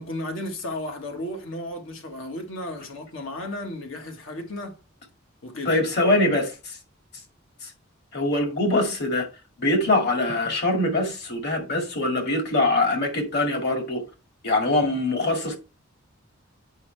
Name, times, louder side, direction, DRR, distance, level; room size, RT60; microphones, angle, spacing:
voice 1, 0.0-4.8 5.4-5.8, left 1 dB, 70° left, 1.5 m, -34 dB
voice 2, 5.7-6.8 7.6-7.7 8.1-9.3 9.6-14.0 14.4-15.6, left 2 dB, 55° left, 2.2 m, -23 dB
8.2 x 5.4 x 3.3 m
head